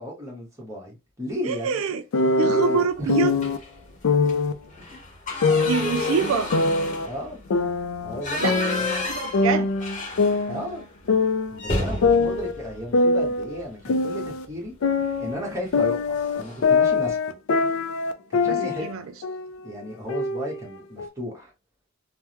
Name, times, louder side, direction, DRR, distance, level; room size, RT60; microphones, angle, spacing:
voice 1, 0.0-1.8 2.4-3.1 4.8-5.0 5.8-5.9 7.0-7.4 8.0-8.9 10.5-10.8 11.5-14.7 15.2-17.3 18.3-18.9 19.6-21.5, equal, 15° right, 1.1 m, -34 dB
voice 2, 1.4-2.0 2.4-3.3 5.5-6.5 8.4-9.7 18.4-19.0, right 6 dB, 70° right, 0.3 m, -26 dB
sound 1, 2.1-3.6 4.0-4.6 5.4-7.1 7.5-9.1 9.3-11.6 12.0-14.5 14.8-18.9 19.2-19.6 20.1-21.1, left 4 dB, 70° left, 0.4 m, -23 dB
sound 2, 3.4-3.8 4.2-4.3 4.7-10.7 11.0-11.1 11.5-13.7 15.0-15.3 15.7-15.8 16.1-16.8, left 2 dB, 35° left, 1.0 m, -32 dB
3.4 x 2.1 x 2.9 m
head